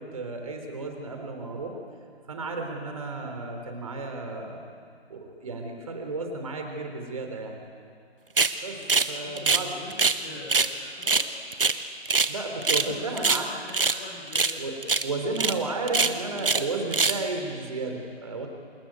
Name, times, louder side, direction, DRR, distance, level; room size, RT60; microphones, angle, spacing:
voice 1, 0.0-1.8 2.3-4.6 5.1-7.6 8.6-8.8 9.1-9.7 10.3-10.4 12.3-13.5 14.6-14.8 15.0-18.5, right 3 dB, 30° right, 3 dB, 3.6 m, -33 dB
sound 1, 8.4-8.6 8.9-9.1 9.4-10.2 10.5-10.7 11.0-12.3 12.6-12.9 13.2-14.0 14.3-14.6 14.8-15.1 15.4-15.5 15.9-16.7 16.9-17.2, right 4 dB, 55° right, 1.3 m, -23 dB
voice 2, 8.7-11.3 12.7-14.6, left 2 dB, 5° left, -5 dB, 1.0 m, -44 dB
28.0 x 19.5 x 9.3 m, 2.2 s
figure-of-eight pair, 155°, 33 cm